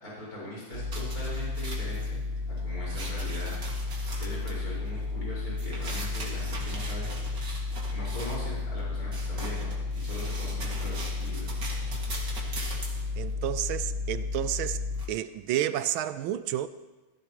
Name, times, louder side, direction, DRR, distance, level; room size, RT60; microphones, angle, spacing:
voice 1, 0.0-2.2 2.5-3.5 4.2-7.1 7.9-11.6, equal, 40° left, -7 dB, 5.6 m, -40 dB
sound 1, 0.7-15.0, left 3 dB, 55° right, 2.8 m, -32 dB
voice 2, 13.2-14.8 15.1-16.7, right 12 dB, 80° right, 13 dB, 1.3 m, -30 dB
16.5 x 15.0 x 3.0 m, 1.1 s
omnidirectional pair, 2.3 m